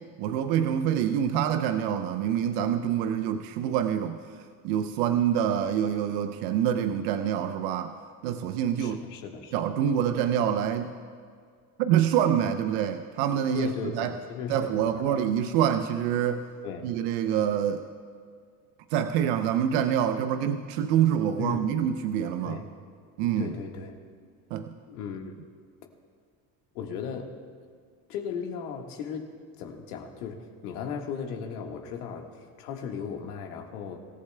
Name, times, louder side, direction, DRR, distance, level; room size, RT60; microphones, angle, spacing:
voice 1, 0.2-4.2 4.6-8.0 8.2-9.0 9.5-10.9 11.8-14.1 14.5-16.5 16.8-17.8 18.9-22.6 23.2-23.5 24.5-24.7, right 9 dB, 75° right, 8 dB, 0.8 m, -26 dB
voice 2, 8.8-9.5 13.5-15.2 16.6-16.9 21.4-21.7 22.4-22.7 23.4-24.0 24.9-25.4 26.7-27.4 28.1-34.0, left 6 dB, 85° left, 2 dB, 1.7 m, -36 dB
25.0 x 14.5 x 2.3 m, 2.1 s
hypercardioid pair, 75°, 45 cm